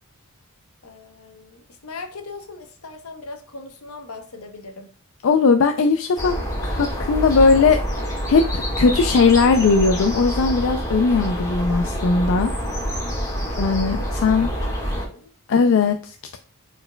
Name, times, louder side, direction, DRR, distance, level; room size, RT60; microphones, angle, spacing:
voice 1, 0.8-4.9 13.4-15.3, left 3 dB, 80° left, 0.9 m, -40 dB
voice 2, 5.2-6.4 6.6-7.8 8.3-12.5 13.6-14.5 15.5-16.4, left 4 dB, 60° left, 0.4 m, -18 dB
sound 1, 6.2-15.0, equal, 15° left, 1.5 m, -26 dB
4.7 x 4.3 x 2.2 m
head